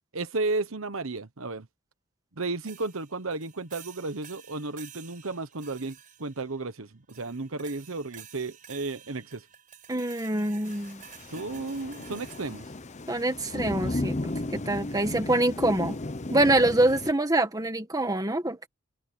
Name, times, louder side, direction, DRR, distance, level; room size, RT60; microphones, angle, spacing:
voice 1, 0.1-1.7 2.4-9.5 11.3-12.7, right 3 dB, 65° right, 1.2 m, -33 dB
sound 1, 2.7-6.7 7.1-13.0, right 9 dB, 40° right, 5.1 m, -51 dB
voice 2, 9.9-11.0 13.1-14.2 14.5-16.0 16.3-18.7, right 2 dB, 15° right, 1.7 m, -25 dB
Thunder / Rain, 10.7-17.1, left 2 dB, 30° left, 0.8 m, -35 dB
head